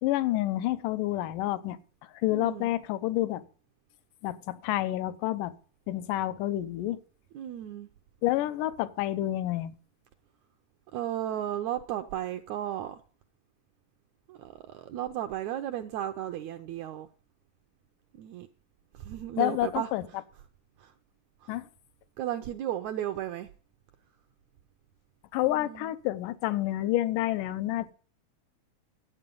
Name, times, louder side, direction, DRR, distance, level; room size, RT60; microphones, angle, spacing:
voice 1, 0.0-1.8 2.2-3.4 4.2-5.5 5.9-7.0 8.2-9.7 19.4-20.0 21.5-21.7 25.3-27.9, left 15 dB, 80° left, 2.3 m, -29 dB
voice 2, 2.3-2.7 7.3-7.9 10.9-13.0 14.3-17.1 18.2-18.5 18.9-19.9 20.8-20.9 21.4-21.6 22.2-23.5 25.4-25.9, right 12 dB, 75° right, 1.7 m, -34 dB
12.0 x 8.4 x 5.3 m
omnidirectional pair, 3.8 m